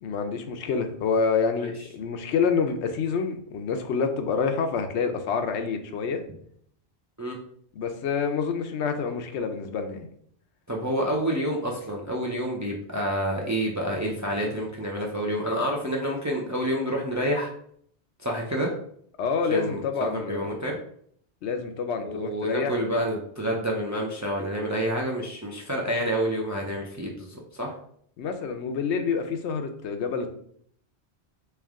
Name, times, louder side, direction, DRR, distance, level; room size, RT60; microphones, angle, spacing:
voice 1, 0.0-6.2 7.8-10.1 19.2-20.7 21.4-22.7 28.2-30.3, left 5 dB, 90° left, 7 dB, 0.9 m, -27 dB
voice 2, 10.7-17.5 18.2-18.7 19.5-19.8 20.3-20.8 22.0-27.7, equal, 25° right, -1 dB, 0.4 m, -28 dB
3.4 x 3.0 x 3.5 m, 0.64 s
omnidirectional pair, 1.1 m